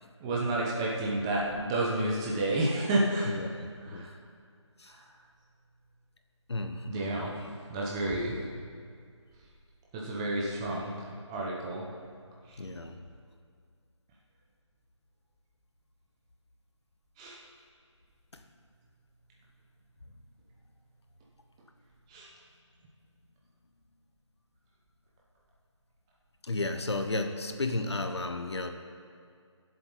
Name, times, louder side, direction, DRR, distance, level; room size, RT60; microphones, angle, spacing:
voice 1, 0.2-3.3 3.8-4.1 4.9-5.0 6.9-7.3 7.7-8.4 9.9-11.8 12.5-12.6 17.2-17.4 22.1-22.3, right 1 dB, 10° right, -4 dB, 0.9 m, -30 dB
voice 2, 3.3-4.1 4.8-4.9 6.5-7.5 12.6-13.0 18.3-18.4 26.4-28.7, left 2 dB, 60° left, 6 dB, 1.2 m, -34 dB
23.0 x 7.8 x 4.1 m, 2.2 s
figure-of-eight pair, 160°, 16 cm